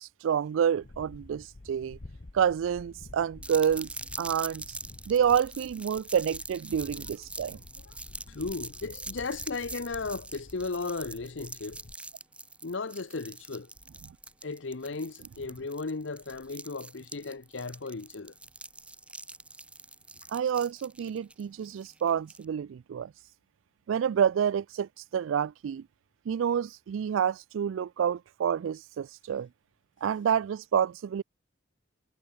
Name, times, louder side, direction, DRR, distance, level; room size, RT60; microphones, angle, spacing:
voice 1, 0.0-2.0 2.3-3.9 4.2-4.8 5.1-7.6 20.3-23.1 23.9-25.8 26.3-29.5 30.0-31.2, right 8 dB, 85° right, 0.3 m, -28 dB
sound 1, 0.8-12.0, left 2 dB, 45° left, 0.9 m, -50 dB
sound 2, 3.4-22.5, right 2 dB, 5° right, 1.1 m, -44 dB
voice 2, 8.3-11.8 12.6-13.7 14.4-18.3, left 3 dB, 70° left, 0.9 m, -36 dB
head